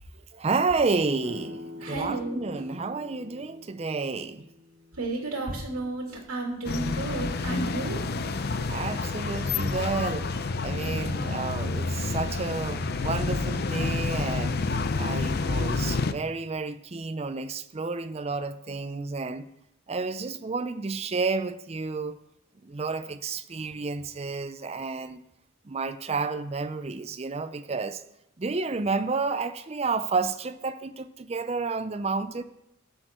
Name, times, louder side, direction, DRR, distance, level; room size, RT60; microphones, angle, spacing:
voice 1, 0.3-4.4 8.7-19.5 19.9-22.2 22.6-25.2 25.6-28.0 28.4-32.4, right 4 dB, 30° right, 0.4 m, -31 dB
sound 1, 1.2-6.8, left 2 dB, 5° left, 4.6 m, -46 dB
voice 2, 1.8-2.5 4.9-8.0, right 2 dB, 85° right, 2.4 m, -32 dB
sound 2, 6.6-16.1, left 3 dB, 45° left, 0.5 m, -29 dB
13.5 x 6.7 x 4.4 m
head